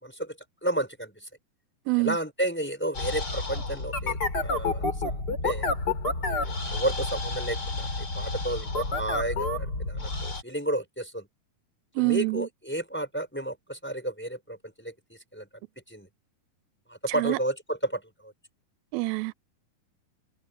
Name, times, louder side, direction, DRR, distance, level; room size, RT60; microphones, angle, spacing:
voice 1, 0.0-1.3 2.0-5.7 6.2-11.3 12.0-15.5 15.9-16.1 16.9-18.3, right 1 dB, 5° left, 4.5 m, -32 dB
voice 2, 1.9-2.2 12.0-12.5 17.1-17.4 18.9-19.4, right 28 dB, 90° right, 2.4 m, -26 dB
sound 1, 2.9-10.4, left 3 dB, 25° left, 4.8 m, -30 dB
omnidirectional pair, 4.2 m